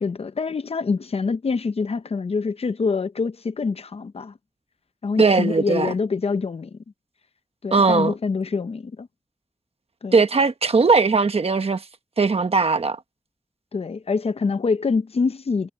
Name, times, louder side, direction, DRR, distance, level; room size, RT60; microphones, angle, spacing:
voice 1, 0.0-4.3 5.0-6.8 7.6-9.1 10.0-10.1 13.7-15.7, left 4 dB, 85° left, 0.6 m, -25 dB
voice 2, 5.2-5.9 7.7-8.1 10.1-11.8 12.2-13.0, right 4 dB, 85° right, 1.2 m, -19 dB
wide cardioid pair, 50°, 10 cm